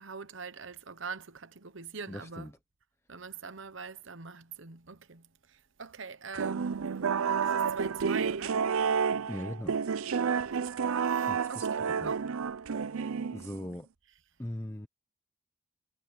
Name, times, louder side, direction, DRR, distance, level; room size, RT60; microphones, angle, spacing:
voice 1, 0.0-2.5 3.1-5.2 5.8-6.8 7.4-8.6 10.5-10.6 11.1-12.2, right 5 dB, 60° right, 1.1 m, -43 dB
voice 2, 2.1-2.5 9.3-9.8 11.3-11.7 12.0-12.1 12.9-13.0 13.3-13.9 14.4-14.9, left 1 dB, 10° left, 0.7 m, -40 dB
sound 1, 6.3-13.7, right 6 dB, 75° right, 0.5 m, -30 dB
head